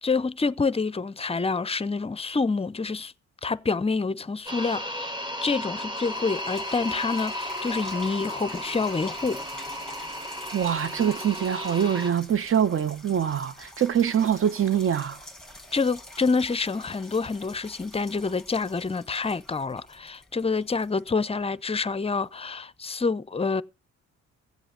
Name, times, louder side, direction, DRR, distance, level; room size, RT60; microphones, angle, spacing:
voice 1, 0.0-3.1 3.4-5.1 5.4-9.4 15.7-23.6, left 4 dB, 20° left, 0.7 m, -27 dB
sound 1, 4.5-12.1, left 1 dB, 15° right, 1.7 m, -34 dB
sound 2, 5.5-5.6 6.0-21.7 22.3-22.4, left 1 dB, ahead, 2.0 m, -46 dB
voice 2, 10.5-15.2, right 9 dB, 45° right, 1.0 m, -24 dB
16.0 x 7.8 x 5.8 m
cardioid pair, 90°, 30 cm